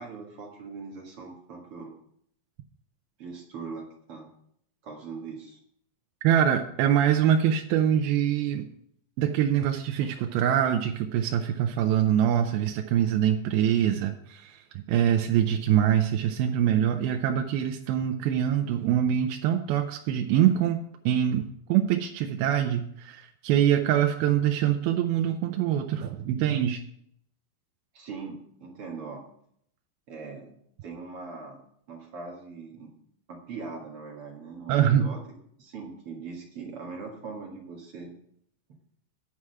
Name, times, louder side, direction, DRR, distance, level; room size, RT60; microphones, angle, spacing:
voice 1, 0.0-1.9 3.2-4.3 4.8-5.6 27.9-29.3 30.1-32.9 33.3-35.2 35.6-38.1, right 4 dB, 50° right, 0 dB, 2.0 m, -41 dB
voice 2, 6.2-8.7 9.2-26.8 34.7-35.1, right 10 dB, 90° right, 5 dB, 2.6 m, -24 dB
10.0 x 4.8 x 7.6 m, 0.68 s
omnidirectional pair, 4.2 m